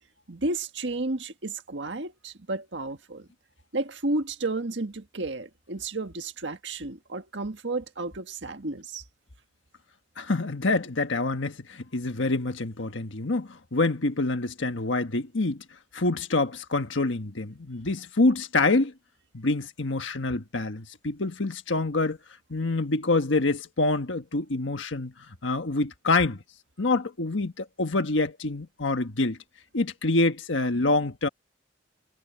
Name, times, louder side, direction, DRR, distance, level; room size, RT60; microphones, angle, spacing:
voice 1, 0.3-3.3 3.7-9.0, right 2 dB, 65° right, 1.7 m, -32 dB
voice 2, 10.2-15.6 15.9-18.9 19.3-22.2 22.5-26.4 26.8-29.4 29.7-31.3, left 2 dB, 85° left, 1.4 m, -26 dB
head